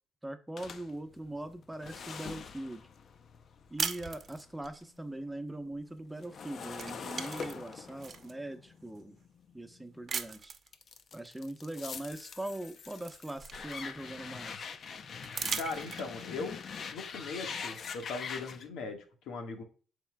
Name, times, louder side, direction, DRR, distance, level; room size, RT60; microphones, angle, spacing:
voice 1, 0.2-2.8 3.7-9.2 9.5-10.6 11.1-14.7, right 1 dB, 5° right, 7 dB, 0.9 m, -41 dB
sound 1, 0.6-4.8 5.2-10.1 10.7-18.7, left 6 dB, 55° left, 0.7 m, -44 dB
sound 2, 3.8-4.8 6.2-6.4 6.7-8.3 8.9-9.0 10.1-10.7 12.1-12.2 12.6-14.1 15.2-16.3, right 6 dB, 45° right, 0.9 m, -38 dB
voice 2, 15.5-16.6 16.9-19.6, left 4 dB, 90° left, 3 dB, 1.6 m, -39 dB
12.0 x 4.5 x 2.3 m, 0.37 s
cardioid pair, 90°, 0 cm